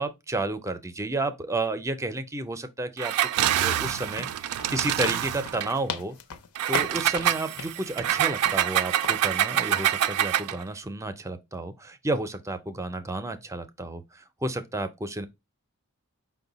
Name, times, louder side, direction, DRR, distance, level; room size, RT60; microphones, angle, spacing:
voice 1, 0.0-3.1 3.6-6.2 6.7-15.3, right 2 dB, 15° right, 0.4 m, -31 dB
Engine, 3.0-5.7 6.5-10.6, right 11 dB, 80° right, 0.3 m, -26 dB
sound 1, 3.8-8.7 9.0-9.3, left 6 dB, 85° left, 0.6 m, -38 dB
5.4 x 2.2 x 3.9 m
head